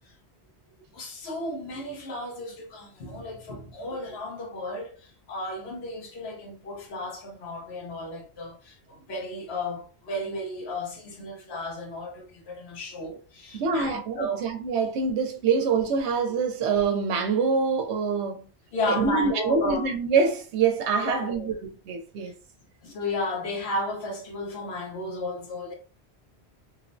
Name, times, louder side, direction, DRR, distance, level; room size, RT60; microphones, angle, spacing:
voice 1, 0.9-14.4 18.7-19.9 21.0-21.5 22.2-22.3 22.8-25.7, left 1 dB, 70° left, 1.0 m, -33 dB
voice 2, 13.5-18.5 18.9-21.5 21.9-22.3, right 5 dB, 90° right, 0.9 m, -25 dB
2.9 x 2.0 x 2.5 m
omnidirectional pair, 1.1 m